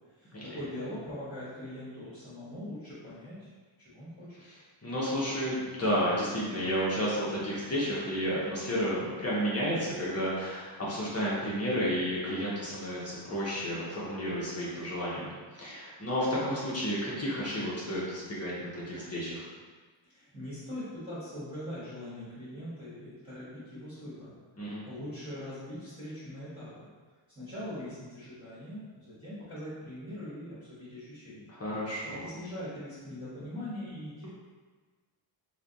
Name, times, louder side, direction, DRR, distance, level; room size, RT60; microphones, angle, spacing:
voice 1, 0.1-3.5 3.8-4.3 20.0-26.9 27.3-31.4 32.2-34.3, left 1 dB, 10° right, -15 dB, 1.5 m, -42 dB
voice 2, 4.8-19.4 24.6-24.8 31.5-32.3, equal, 30° left, -7 dB, 0.8 m, -31 dB
3.2 x 2.3 x 3.9 m, 1.4 s
wide cardioid pair, 130°, 49 cm